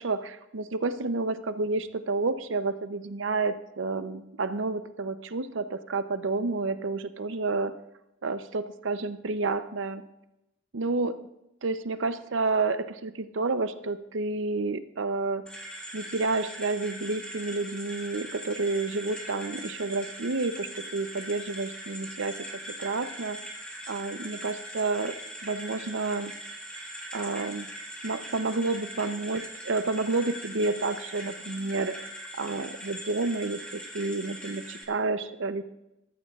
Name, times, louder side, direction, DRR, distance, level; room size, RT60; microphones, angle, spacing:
voice 1, 0.0-7.7 8.2-10.0 10.7-11.2 11.6-15.5 15.9-23.4 23.9-25.1 25.4-26.3 27.1-27.7 28.0-32.0 32.4-35.6, right 3 dB, 80° right, 11 dB, 0.7 m, -30 dB
sound 1, 15.5-34.8, right 1 dB, 5° left, 1.8 m, -41 dB
22.0 x 13.0 x 2.4 m, 0.89 s
head